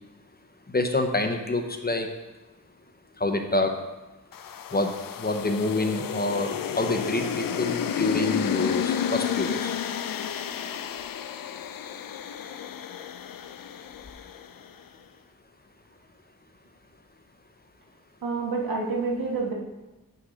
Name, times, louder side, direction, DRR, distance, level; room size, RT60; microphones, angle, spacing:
voice 1, 0.7-2.1 3.2-3.7 4.7-4.9 5.2-6.5 6.8-9.7, left 2 dB, 30° left, 5 dB, 0.8 m, -27 dB
sound 1, 4.3-14.7, left 8 dB, 75° left, 0.5 m, -31 dB
voice 2, 18.2-19.5, right 4 dB, 85° right, -2 dB, 1.6 m, -28 dB
9.4 x 3.8 x 4.9 m, 1.1 s
wide cardioid pair, 70°, 34 cm